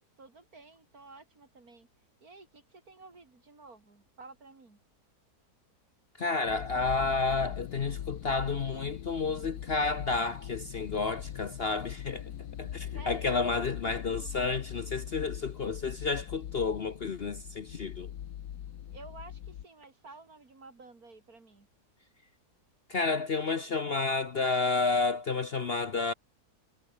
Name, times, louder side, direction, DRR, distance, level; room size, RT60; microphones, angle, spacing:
voice 1, 0.2-1.9 2.2-4.8 12.9-13.4 18.9-21.7, right 3 dB, 60° right, 4.2 m, -52 dB
voice 2, 6.2-12.3 12.6-18.1 22.9-26.1, left 4 dB, 45° left, 1.0 m, -31 dB
sound 1, 6.4-19.6, left 10 dB, 75° left, 1.5 m, -41 dB
omnidirectional pair, 1.7 m